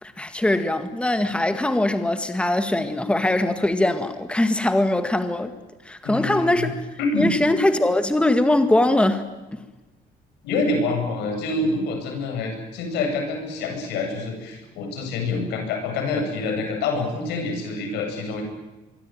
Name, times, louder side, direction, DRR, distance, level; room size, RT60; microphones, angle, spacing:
voice 1, 0.0-5.5 5.9-6.8 7.2-9.6, left 1 dB, 5° left, 1.9 m, -21 dB
voice 2, 6.0-6.7 7.0-7.3 10.4-18.4, left 3 dB, 90° left, 7.9 m, -26 dB
25.0 x 23.5 x 9.3 m
cardioid pair, 110°, 17 cm